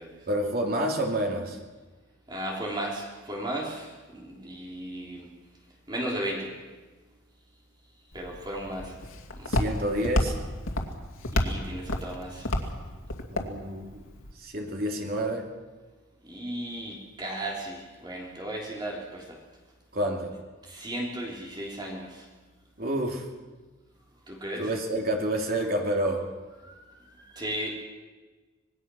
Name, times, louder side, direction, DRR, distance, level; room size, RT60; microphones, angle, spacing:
voice 1, 0.3-1.6 9.5-10.3 13.3-14.0 14.4-15.5 19.9-20.3 22.8-23.2 24.6-26.2, right 1 dB, 45° right, 1 dB, 2.9 m, -28 dB
voice 2, 2.3-5.3 5.9-6.5 8.1-8.9 9.4-9.5 11.3-12.5 16.2-19.4 20.6-22.2 24.3-24.7 26.6-26.8 27.2-27.7, right 1 dB, 20° right, -2 dB, 3.4 m, -35 dB
Walk footsteps, 8.1-14.3, left 1 dB, 90° left, 2.5 m, -31 dB
26.0 x 20.0 x 6.3 m, 1.3 s
head